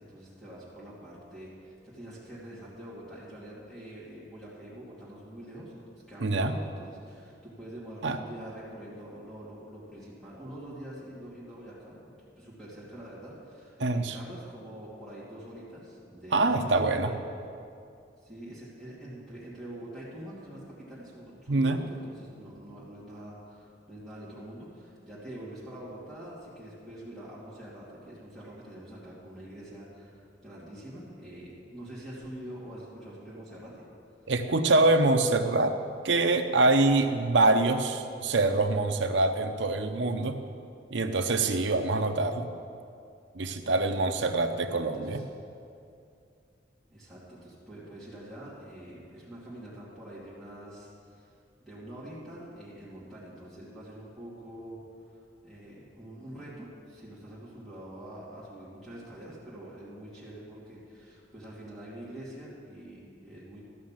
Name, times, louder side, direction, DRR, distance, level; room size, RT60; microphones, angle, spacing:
voice 1, 0.0-17.2 18.2-33.8 44.7-45.2 46.9-51.3 51.6-63.6, right 1 dB, ahead, -10 dB, 2.7 m, -45 dB
voice 2, 6.2-6.5 8.0-8.2 13.8-14.2 16.3-17.1 21.5-21.8 34.3-35.8 36.0-40.4 40.9-42.5 43.3-45.2, right 2 dB, 75° right, 6 dB, 0.8 m, -25 dB
13.5 x 6.4 x 7.5 m, 2.5 s
head